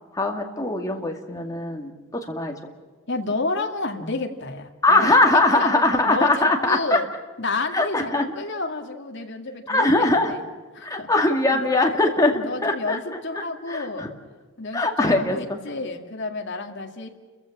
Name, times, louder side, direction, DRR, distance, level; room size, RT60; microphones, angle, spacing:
voice 1, 0.1-2.5 4.8-7.0 7.7-8.3 9.7-10.3 10.8-13.0 13.3-14.1 14.7-15.6, left 2 dB, 15° left, 2 dB, 2.2 m, -21 dB
voice 2, 3.1-5.7 6.1-7.1 7.4-10.4 10.7-11.1 11.5-11.6 12.1-14.1 14.6-17.1, left 3 dB, 55° left, 3 dB, 2.2 m, -30 dB
30.0 x 15.0 x 7.4 m, 1.4 s
head